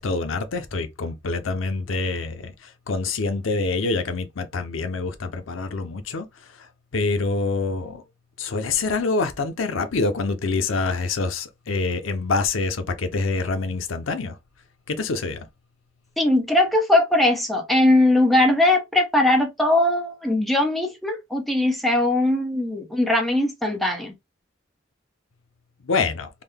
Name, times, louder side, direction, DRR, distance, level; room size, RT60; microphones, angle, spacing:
voice 1, 0.0-6.3 6.9-8.0 8.4-14.3 14.9-15.5 25.9-26.3, left 3 dB, 85° left, 0.6 m, -26 dB
voice 2, 16.2-24.1, left 1 dB, ahead, 0.8 m, -20 dB
3.7 x 2.2 x 3.3 m
head